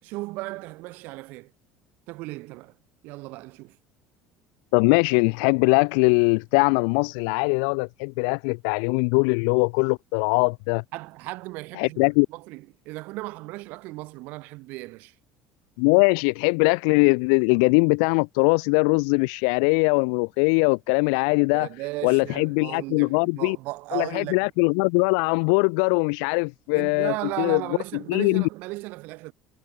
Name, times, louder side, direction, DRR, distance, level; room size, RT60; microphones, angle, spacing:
voice 1, 0.0-1.5 2.1-2.7 3.0-3.8 10.9-12.0 12.3-15.1 21.5-24.5 26.7-29.3, right 22 dB, 70° right, 5.7 m, -36 dB
voice 2, 4.7-10.8 11.8-12.3 15.8-21.7 22.0-23.6 23.9-27.6 28.1-28.5, left 40 dB or more, 80° left, 0.7 m, -21 dB
supercardioid pair, 105°, 3 cm